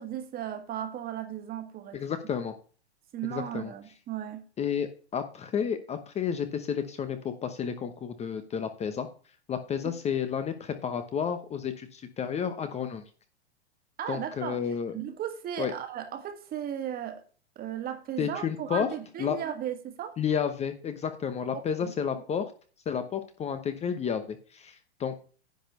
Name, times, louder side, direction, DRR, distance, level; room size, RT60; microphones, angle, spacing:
voice 1, 0.0-2.0 3.1-4.4 9.8-9.9 14.0-14.6 14.9-17.2 17.6-20.2 21.5-21.9, right 10 dB, 25° right, 1.8 m, -36 dB
voice 2, 1.9-2.5 3.3-3.7 4.6-9.1 9.5-13.0 14.1-14.9 15.6-15.7 18.2-18.9 19.2-19.4 20.2-22.5 22.9-25.2, left 7 dB, 20° left, 1.0 m, -31 dB
10.5 x 4.3 x 6.7 m
hypercardioid pair, 120°, 33 cm